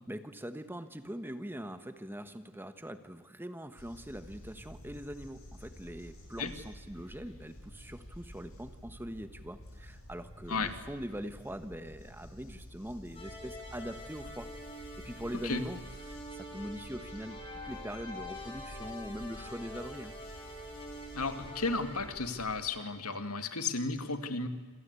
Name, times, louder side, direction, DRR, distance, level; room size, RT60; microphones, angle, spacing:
voice 1, 0.1-14.5 14.8-15.8 16.0-17.4 17.6-20.2, equal, 10° right, 10 dB, 1.3 m, -42 dB
sound 1, 3.8-22.6, equal, 70° left, 7.3 m, -50 dB
sound 2, 13.1-22.1, left 1 dB, 25° left, 7.4 m, -46 dB
voice 2, 21.1-24.5, left 3 dB, 85° left, 8 dB, 2.3 m, -34 dB
27.0 x 26.5 x 8.3 m, 1.3 s
head